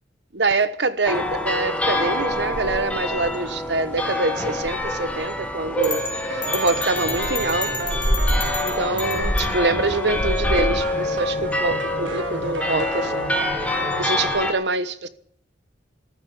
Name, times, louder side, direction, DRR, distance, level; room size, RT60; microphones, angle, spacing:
voice 1, 0.3-7.9 8.6-13.4 14.0-15.1, right 3 dB, 65° right, 1.2 m, -25 dB
sound 1, 1.1-14.5, left 1 dB, 5° left, 2.0 m, -25 dB
sound 2, 5.8-9.5, left 3 dB, 25° left, 3.8 m, -32 dB
sound 3, 6.3-14.3, right 2 dB, 80° right, 2.9 m, -32 dB
14.5 x 10.0 x 9.9 m
head